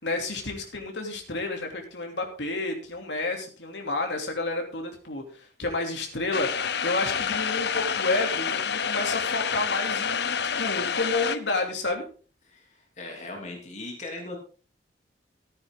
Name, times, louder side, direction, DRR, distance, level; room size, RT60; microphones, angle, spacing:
voice 1, 0.0-12.0, left 2 dB, 80° left, 2 dB, 3.0 m, -30 dB
sound 1, 6.3-11.4, left 7 dB, 65° left, 0.7 m, -28 dB
voice 2, 12.4-14.4, left 2 dB, 40° left, 1 dB, 3.2 m, -39 dB
14.5 x 9.8 x 3.8 m, 0.39 s
head